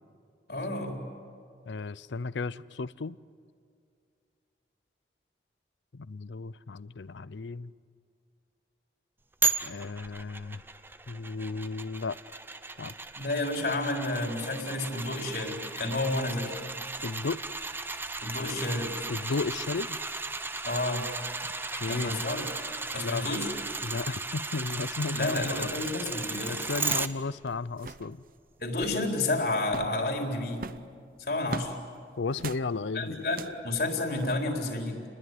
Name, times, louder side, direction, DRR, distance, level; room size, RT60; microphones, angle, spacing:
voice 1, 0.5-1.0 13.2-16.6 18.2-19.1 20.6-21.1 21.8-22.5 22.9-23.5 25.1-26.6 28.6-30.6 31.2-31.8 32.9-35.0, left 2 dB, 60° left, 2 dB, 4.2 m, -30 dB
voice 2, 1.7-3.2 5.9-7.7 9.6-10.6 11.1-12.2 12.8-13.0 17.0-17.4 19.1-20.0 21.7-22.2 23.0-23.4 23.8-25.7 26.5-28.2 32.2-33.2, left 4 dB, 85° left, 19 dB, 0.6 m, -34 dB
sound 1, 9.4-27.1 27.5-27.6, right 3 dB, 10° right, 0.7 m, -35 dB
sound 2, 26.1-26.2 26.8-27.2 27.5-27.6 27.7-28.1 28.6-29.0 29.6-30.0 30.5-31.8 32.4-32.7 33.2-33.6 34.2-34.4, right 4 dB, 50° right, 0.7 m, -40 dB
29.5 x 21.0 x 9.4 m, 2.4 s
head